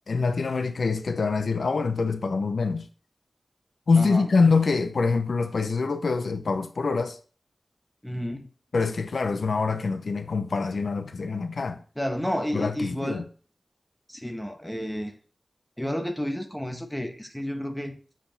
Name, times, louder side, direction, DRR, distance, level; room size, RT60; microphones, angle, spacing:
voice 1, 0.1-2.9 3.9-7.2 8.7-11.8 12.5-13.2, left 4 dB, 90° left, 0.7 m, -25 dB
voice 2, 3.9-4.3 8.0-8.5 12.0-13.2 14.1-15.1 15.8-17.9, equal, 5° left, 1.4 m, -31 dB
7.1 x 5.1 x 5.4 m
wide cardioid pair, 70°, 0 cm